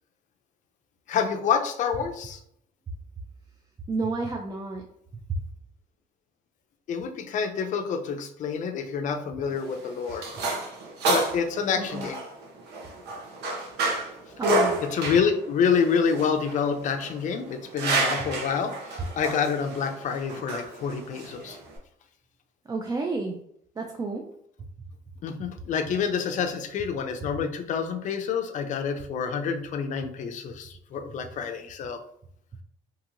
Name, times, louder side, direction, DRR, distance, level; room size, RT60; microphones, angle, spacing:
voice 1, 1.1-2.4 6.9-10.3 11.1-12.2 14.9-21.6 25.2-32.0, left 6 dB, 50° left, 5 dB, 0.4 m, -27 dB
voice 2, 3.9-4.8 5.3-5.4 11.8-12.1 14.4-14.8 22.7-23.4 23.8-24.2, right 3 dB, 20° right, 1 dB, 0.3 m, -30 dB
sound 1, 9.5-21.8, right 2 dB, 80° right, 0.8 m, -30 dB
2.9 x 2.6 x 2.5 m, 0.70 s
cardioid pair, 110°, 17 cm